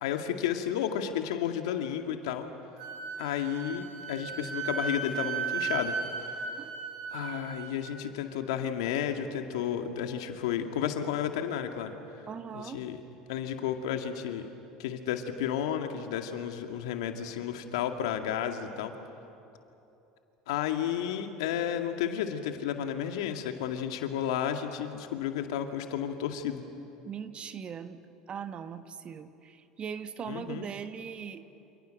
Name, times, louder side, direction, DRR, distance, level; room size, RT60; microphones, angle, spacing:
voice 1, 0.0-2.5 3.2-6.0 6.3-6.5 7.1-11.9 12.5-13.0 13.3-14.5 14.8-18.9 20.5-26.6 30.3-30.7, left 9 dB, 75° left, 5 dB, 2.1 m, -32 dB
Wind instrument woodwind instrument, 2.8-7.9, right 5 dB, 75° right, 5.6 m, -36 dB
voice 2, 12.3-12.8 27.1-28.0 28.3-31.5, right 7 dB, 40° right, 10 dB, 1.4 m, -40 dB
29.0 x 27.5 x 6.5 m, 2.9 s
hypercardioid pair, 80°, 3 cm